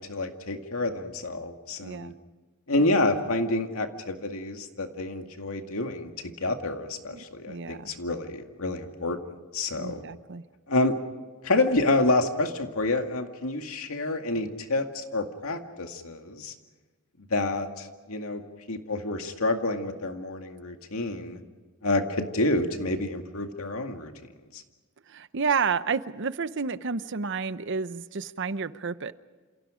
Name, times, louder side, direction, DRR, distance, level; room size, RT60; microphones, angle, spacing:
voice 1, 0.0-2.1 2.7-9.2 9.5-10.0 10.7-11.0 11.4-16.5 17.3-18.4 18.7-21.4 21.8-24.1 24.5-24.6, left 2 dB, 85° left, 5 dB, 2.1 m, -28 dB
voice 2, 1.8-2.1 2.8-2.9 7.1-7.9 9.7-10.4 25.1-29.1, right 5 dB, 60° right, 13 dB, 0.8 m, -31 dB
28.5 x 28.0 x 5.1 m, 1.3 s
head